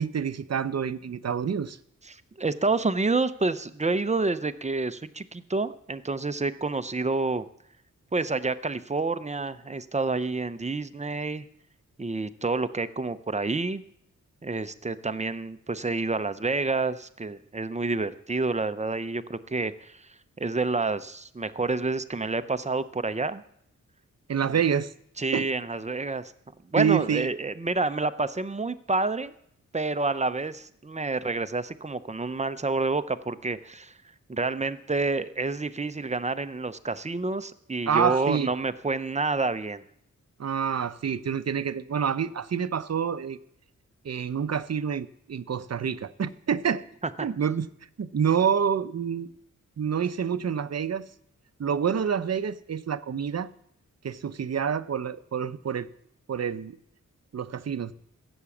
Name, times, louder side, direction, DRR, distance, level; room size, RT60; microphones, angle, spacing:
voice 1, 0.0-1.8 24.3-24.9 25.3-25.4 26.8-27.3 37.9-38.5 40.4-43.4 44.0-46.8 47.2-47.7 48.0-49.3 49.8-51.1 51.6-53.5 54.0-55.9 56.3-56.8 57.3-57.9, right 7 dB, 55° right, 0.7 m, -27 dB
voice 2, 2.1-7.4 8.1-11.5 12.0-13.8 14.4-20.1 20.4-23.4 25.2-26.3 26.7-29.3 29.7-33.9 34.3-39.8 47.2-47.3, right 3 dB, 20° right, 0.7 m, -28 dB
16.0 x 8.1 x 7.2 m
wide cardioid pair, 130°, 31 cm